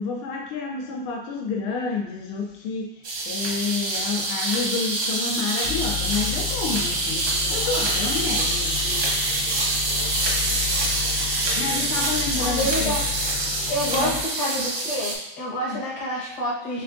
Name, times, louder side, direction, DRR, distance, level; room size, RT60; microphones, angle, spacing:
voice 1, 0.0-8.8 11.3-12.9 13.9-14.2 15.7-15.8, left 4 dB, 90° left, 0 dB, 1.5 m, -29 dB
sound 1, 3.0-15.1, right 2 dB, 60° right, 0.8 m, -25 dB
sound 2, 5.6-14.2, left 12 dB, 70° left, 1.1 m, -33 dB
voice 2, 12.4-13.0 13.7-16.8, equal, 55° left, -6 dB, 1.7 m, -28 dB
6.9 x 2.3 x 2.5 m, 0.85 s
omnidirectional pair, 2.3 m